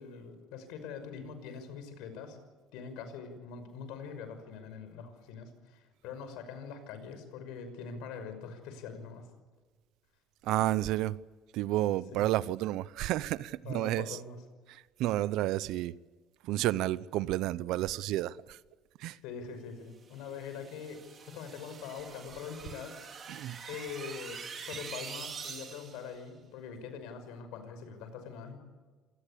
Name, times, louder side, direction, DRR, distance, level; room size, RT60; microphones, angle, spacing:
voice 1, 0.0-2.4 2.7-9.3 12.1-12.3 13.6-14.4 19.2-22.9 23.7-28.6, left 6 dB, 80° left, 5.9 m, -43 dB
voice 2, 10.4-11.2 11.5-14.2 14.7-16.0 16.4-18.6 19.0-19.2 23.3-23.6, right 15 dB, 70° right, 0.7 m, -31 dB
sound 1, 20.1-26.1, right 6 dB, 35° right, 3.8 m, -45 dB
27.0 x 19.5 x 8.5 m
cardioid pair, 135°, 0 cm